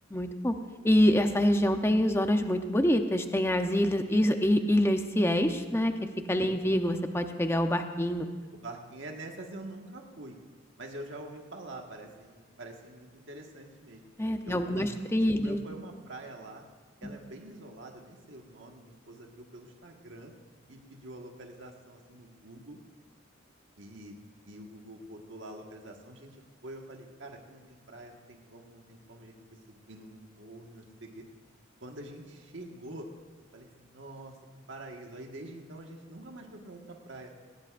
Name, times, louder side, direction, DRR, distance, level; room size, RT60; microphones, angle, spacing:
voice 1, 0.1-0.5 0.8-5.9 6.3-8.3 14.2-15.6 17.0-17.1, left 1 dB, 15° left, 6 dB, 0.7 m, -26 dB
voice 2, 8.5-10.4 10.8-14.1 14.4-15.0 15.3-16.6 17.0-20.3 20.7-22.8 23.8-24.1 24.4-26.4 26.6-29.3 29.7-31.2 31.8-33.1 33.5-34.3 34.7-37.3, right 1 dB, 70° right, 1 dB, 1.6 m, -46 dB
18.5 x 18.0 x 2.5 m, 1.5 s
head